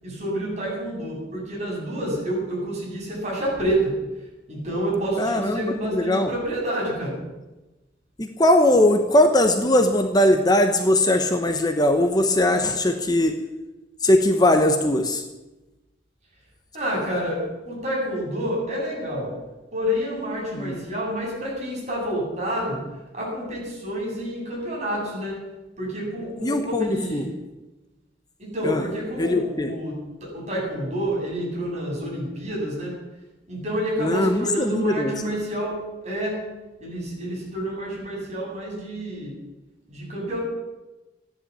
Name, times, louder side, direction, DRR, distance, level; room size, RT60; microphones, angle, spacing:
voice 1, 0.0-3.9 4.5-7.2 16.7-19.3 19.7-22.8 23.1-25.4 25.8-27.3 28.4-29.9 30.2-32.9 33.5-36.4 36.8-39.3 39.9-40.4, equal, 40° right, -4 dB, 7.8 m, -28 dB
voice 2, 5.2-6.3 8.2-13.4 14.0-15.2 20.5-20.8 26.4-27.3 28.6-28.8 29.2-29.7 34.0-35.1, left 1 dB, 25° left, 6 dB, 1.0 m, -20 dB
15.5 x 10.5 x 8.6 m, 1.1 s
head